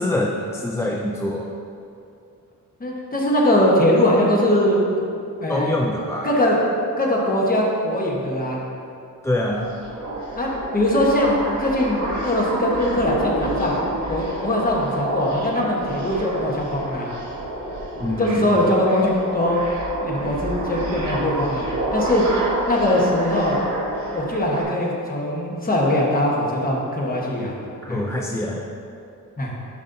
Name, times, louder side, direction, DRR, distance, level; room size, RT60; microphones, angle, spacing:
voice 1, 0.0-1.5 5.5-6.3 9.2-9.7 18.0-18.7 27.8-28.7, left 1 dB, 10° left, -1 dB, 0.3 m, -24 dB
voice 2, 2.8-5.1 5.4-5.7 6.2-6.6 7.0-8.6 10.4-13.8 14.1-17.1 18.2-19.6 20.0-21.6 21.9-22.2 22.7-23.6 24.1-27.5 27.9-28.0 29.4-29.5, left 1 dB, 25° left, -3 dB, 1.1 m, -21 dB
sound 1, 9.3-24.6, right 1 dB, 55° right, 1.3 m, -29 dB
10.5 x 5.2 x 2.6 m, 2.6 s
wide cardioid pair, 145°, 33 cm